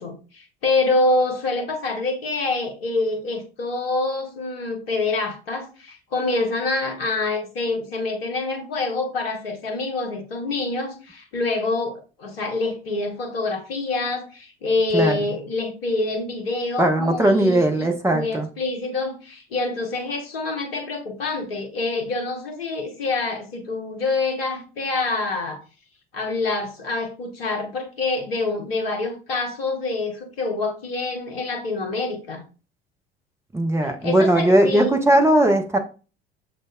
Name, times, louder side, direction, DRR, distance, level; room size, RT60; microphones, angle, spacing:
voice 1, 0.0-25.6 26.1-32.4 34.0-35.0, left 3 dB, 70° left, 0.9 m, -26 dB
voice 2, 16.8-18.5 33.5-35.8, right 1 dB, 10° right, 0.7 m, -18 dB
6.3 x 2.5 x 2.2 m
figure-of-eight pair, 65°, 31 cm